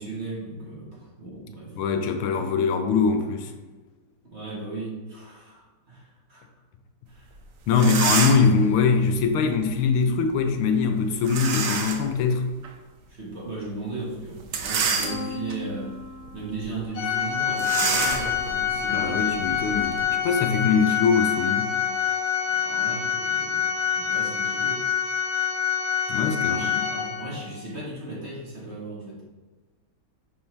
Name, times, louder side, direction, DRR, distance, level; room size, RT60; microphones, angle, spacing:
voice 1, 0.0-1.7 4.3-6.4 7.1-7.2 7.7-8.0 13.1-15.9 16.3-19.6 19.9-20.1 22.6-24.9 26.5-29.2, right 3 dB, 35° right, 1.7 m, -36 dB
voice 2, 1.8-3.5 7.7-12.4 18.9-21.7 26.1-26.8, left 5 dB, 85° left, 1.6 m, -22 dB
sound 1, 7.4-7.5 7.7-8.6 11.3-12.1 12.6-12.7 14.4-15.5 16.1-16.3 16.6-16.7 17.6-20.0, right 5 dB, 90° right, 0.7 m, -28 dB
Piano, 15.0-20.8, left 5 dB, 40° left, 1.8 m, -43 dB
Organ, 16.9-27.5, left 8 dB, 70° left, 1.8 m, -26 dB
5.9 x 5.5 x 3.2 m
omnidirectional pair, 2.3 m